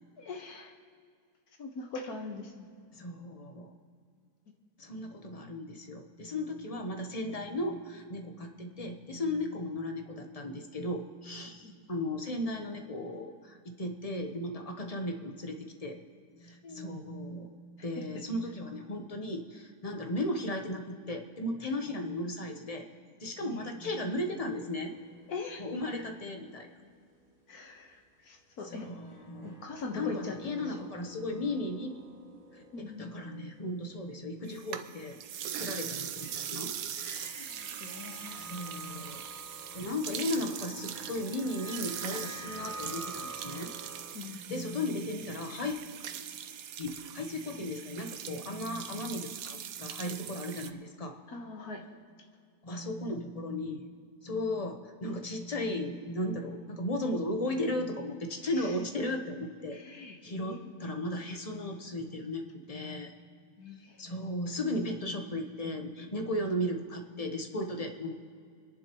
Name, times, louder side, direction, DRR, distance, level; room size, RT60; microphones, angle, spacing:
voice 1, 0.2-0.7 1.6-2.7 11.6-11.7 16.6-16.9 23.4-23.6 25.3-25.6 25.9-26.0 27.5-28.9 29.4-30.9 32.7-33.1 35.5-35.9 36.2-36.3 36.9-38.5 44.1-44.6 51.3-51.9 58.4-58.8 59.7-60.7 63.6-64.0, left 3 dB, 70° left, 3 dB, 1.9 m, -42 dB
voice 2, 2.9-3.7 4.8-16.0 16.4-17.6 17.8-22.9 23.2-24.9 25.6-26.7 28.6-29.6 29.9-32.0 32.5-35.2 35.6-36.7 38.4-39.2 39.7-43.7 44.3-45.8 46.8-51.2 52.6-53.9 54.2-59.8 60.2-63.1 64.0-68.1, left 1 dB, 25° left, 4 dB, 1.0 m, -36 dB
sound 1, 24.3-26.8 27.1-27.2 28.7-35.2 36.1-44.1, right 2 dB, 15° right, 2.5 m, -50 dB
sound 2, 34.5-50.7, right 9 dB, 70° right, 1.1 m, -41 dB
29.0 x 11.0 x 3.1 m, 2.2 s
omnidirectional pair, 1.7 m